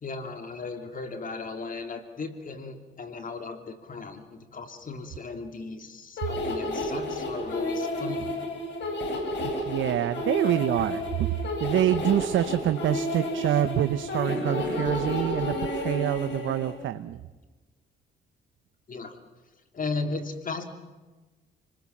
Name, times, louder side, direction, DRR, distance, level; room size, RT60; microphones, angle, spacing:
voice 1, 0.0-8.4 18.9-19.2 19.7-20.6, left 4 dB, 45° left, 7 dB, 2.8 m, -36 dB
sound 1, 6.2-16.7, left 1 dB, 65° left, 7.9 m, -31 dB
voice 2, 9.4-17.2, right 12 dB, 75° right, 11 dB, 1.0 m, -26 dB
29.5 x 20.5 x 7.4 m, 1.2 s
cardioid pair, 90°, 20 cm